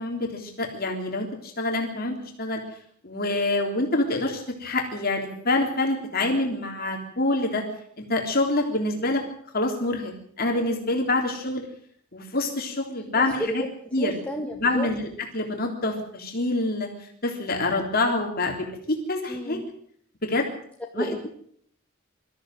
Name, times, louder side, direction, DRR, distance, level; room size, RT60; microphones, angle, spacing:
voice 1, 0.0-2.6 3.0-7.6 8.0-9.2 9.5-11.6 12.1-13.6 13.9-14.1 14.5-15.0 15.3-18.6 18.9-19.6 20.2-20.5 20.9-21.1, left 2 dB, 50° left, 2 dB, 3.5 m, -26 dB
voice 2, 13.1-14.9 19.3-19.7 21.0-21.3, equal, 5° left, 1 dB, 1.8 m, -32 dB
24.0 x 14.5 x 7.7 m, 0.65 s
head